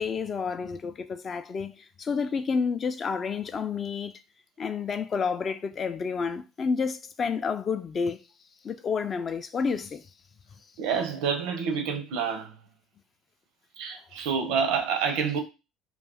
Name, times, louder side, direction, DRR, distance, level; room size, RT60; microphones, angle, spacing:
voice 1, 0.0-4.1 4.6-8.2 8.6-10.0, left 5 dB, 40° left, 0.3 m, -30 dB
voice 2, 10.8-12.6 13.8-15.4, right 6 dB, 80° right, 0.6 m, -28 dB
2.3 x 2.2 x 3.4 m
supercardioid pair, 90°, 0 cm